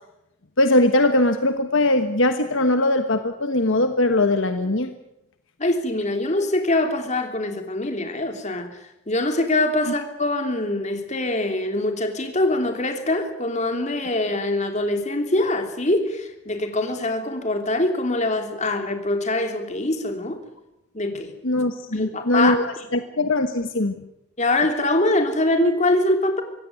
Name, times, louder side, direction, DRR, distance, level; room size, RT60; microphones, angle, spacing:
voice 1, 0.6-4.9 9.8-9.9 21.4-23.9, left 1 dB, 60° left, 8 dB, 1.4 m, -21 dB
voice 2, 5.6-8.7 9.1-20.4 20.9-21.3 21.9-22.5 24.4-26.4, left 2 dB, 30° left, 5 dB, 3.1 m, -23 dB
25.0 x 16.5 x 9.4 m, 0.87 s
head